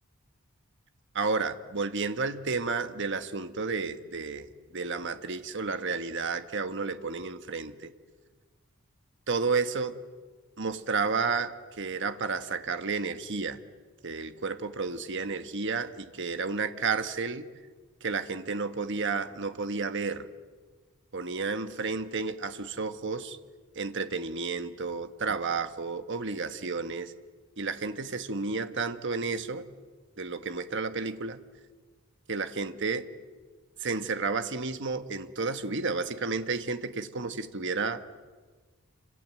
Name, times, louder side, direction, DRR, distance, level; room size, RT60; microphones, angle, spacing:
voice 1, 1.1-4.5 4.7-7.9 9.3-9.9 10.6-13.6 14.0-17.5 18.0-20.3 21.1-23.4 23.7-27.1 27.6-29.6 30.2-31.4 32.3-33.0 33.8-38.0, right 4 dB, 60° right, 9 dB, 1.4 m, -31 dB
28.5 x 26.5 x 7.6 m, 1.4 s
head